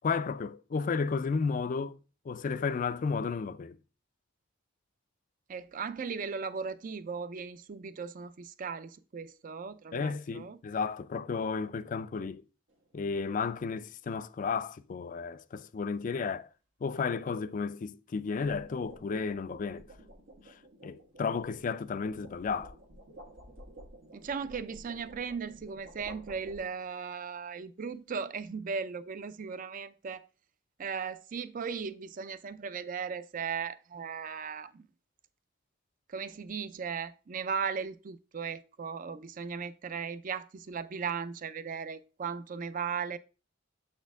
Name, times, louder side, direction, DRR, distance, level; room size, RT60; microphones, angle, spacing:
voice 1, 0.0-2.0 2.3-3.8 9.9-12.4 12.9-16.5 16.8-19.8 20.8-22.7, left 5 dB, 45° left, 0.4 m, -33 dB
voice 2, 5.5-10.6 24.1-30.2 30.8-34.9 36.1-43.2, right 6 dB, 45° right, 0.4 m, -37 dB
sound 1, 12.7-13.0 18.1-27.0, right 1 dB, 85° right, 1.6 m, -52 dB
7.0 x 4.4 x 3.5 m
head